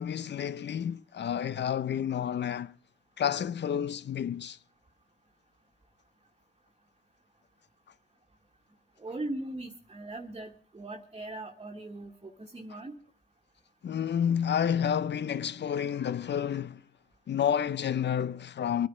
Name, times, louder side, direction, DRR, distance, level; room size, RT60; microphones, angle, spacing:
voice 1, 0.0-2.7 3.2-4.6 13.8-16.8 17.3-18.9, left 8 dB, 65° left, 0.7 m, -30 dB
voice 2, 9.0-12.9, right 2 dB, 30° right, 1.6 m, -39 dB
23.0 x 9.6 x 5.0 m
cardioid pair, 65°, 19 cm